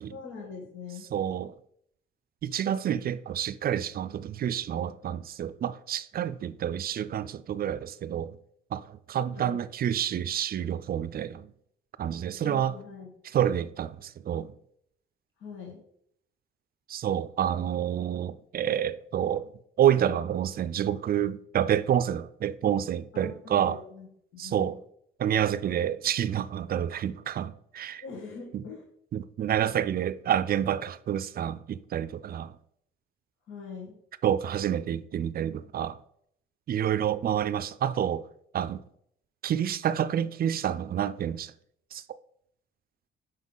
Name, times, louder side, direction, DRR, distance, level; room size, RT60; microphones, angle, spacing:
voice 1, 0.0-1.1 9.4-9.6 12.4-13.1 15.4-15.9 23.1-24.1 24.3-24.8 28.0-28.8 33.5-34.0, left 5 dB, 80° left, 1.7 m, -42 dB
voice 2, 1.1-1.5 2.4-8.4 8.7-11.5 12.0-12.7 13.3-14.5 16.9-19.5 19.8-23.8 24.4-24.8 25.2-28.0 28.5-28.6 29.1-32.5 34.2-36.0 36.7-38.3 38.5-38.8 39.4-41.5 41.9-42.0, right 10 dB, 50° right, 0.4 m, -28 dB
5.3 x 3.9 x 5.5 m
cardioid pair, 90°, 20 cm